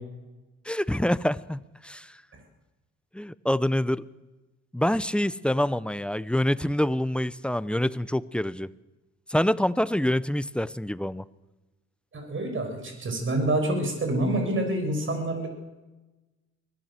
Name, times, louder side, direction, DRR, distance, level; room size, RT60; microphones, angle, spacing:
voice 1, 0.6-2.1 3.1-4.0 4.7-8.7 9.3-11.2, left 1 dB, 5° left, 16 dB, 0.8 m, -26 dB
voice 2, 12.1-15.5, right 1 dB, 40° right, 5 dB, 7.6 m, -27 dB
23.5 x 17.5 x 7.6 m, 1.1 s
cardioid pair, 90°, 30 cm